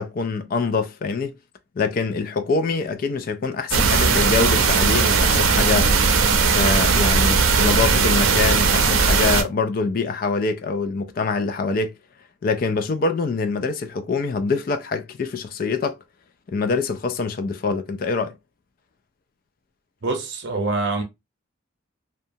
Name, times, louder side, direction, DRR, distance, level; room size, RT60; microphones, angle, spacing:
voice 1, 0.0-1.3 1.8-12.0 12.4-16.0 16.5-18.3, left 4 dB, 45° left, 0.3 m, -25 dB
sound 1, 3.7-9.4, right 4 dB, 85° right, 0.6 m, -18 dB
voice 2, 20.0-21.0, right 3 dB, 55° right, 0.8 m, -25 dB
2.7 x 2.2 x 2.6 m
head